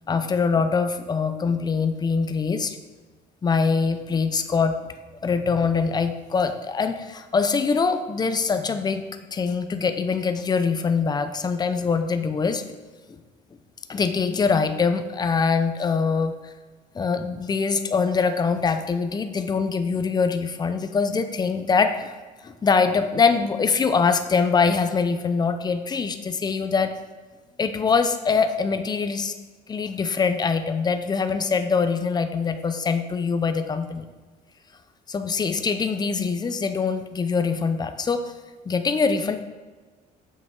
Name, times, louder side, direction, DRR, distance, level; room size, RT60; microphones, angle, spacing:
voice 1, 0.1-2.8 3.4-4.8 5.2-9.0 9.3-12.6 13.1-13.2 13.9-16.3 16.9-22.1 22.4-26.9 27.6-29.4 29.7-34.1 35.1-38.3 38.7-39.4, left 5 dB, 25° left, 9 dB, 0.6 m, -23 dB
7.2 x 6.1 x 3.8 m, 1.3 s
cardioid pair, 110°, 17 cm